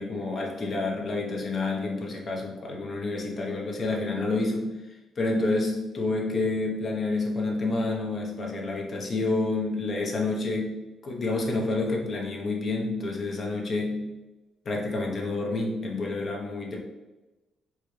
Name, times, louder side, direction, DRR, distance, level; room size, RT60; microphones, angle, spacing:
voice 1, 0.0-14.1 14.6-16.8, left 2 dB, 50° left, 0 dB, 0.8 m, -29 dB
4.4 x 2.3 x 3.2 m, 1.1 s
cardioid pair, 90°, 0 cm